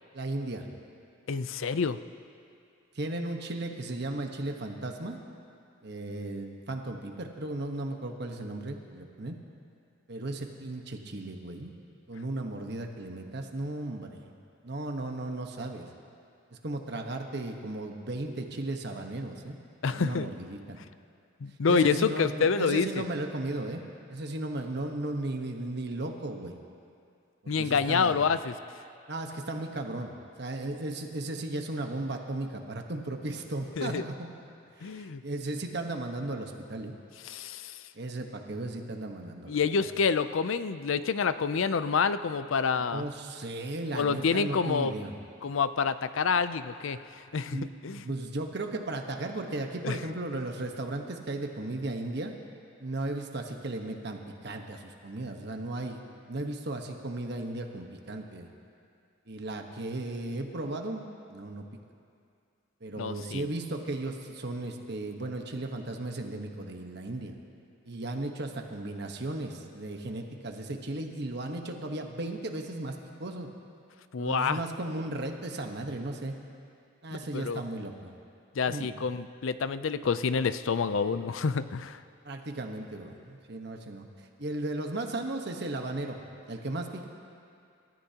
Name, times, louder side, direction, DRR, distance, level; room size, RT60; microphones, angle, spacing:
voice 1, 0.1-0.7 2.9-5.2 5.8-9.4 10.1-11.7 12.1-14.3 14.6-15.9 16.6-19.6 19.9-20.8 21.7-23.8 24.1-26.6 27.4-28.2 29.1-30.1 30.4-34.3 34.8-36.9 37.9-39.9 42.8-45.2 47.5-52.3 52.8-56.0 56.3-58.5 59.3-61.0 61.3-61.6 62.8-67.3 67.9-73.5 74.2-76.4 77.0-78.1 78.7-78.9 82.2-84.1 84.4-86.2 86.5-87.0, right 2 dB, 55° right, 3 dB, 1.2 m, -35 dB
voice 2, 1.3-2.0 19.8-20.3 21.4-23.0 27.5-28.5 33.8-34.0 34.8-35.2 37.2-37.8 39.5-43.0 43.9-44.9 45.4-47.6 47.8-48.0 49.8-50.0 63.0-63.4 74.1-74.6 77.3-77.6 78.6-82.0, left 5 dB, 75° left, 13 dB, 0.5 m, -28 dB
27.5 x 13.5 x 2.9 m, 2.4 s
head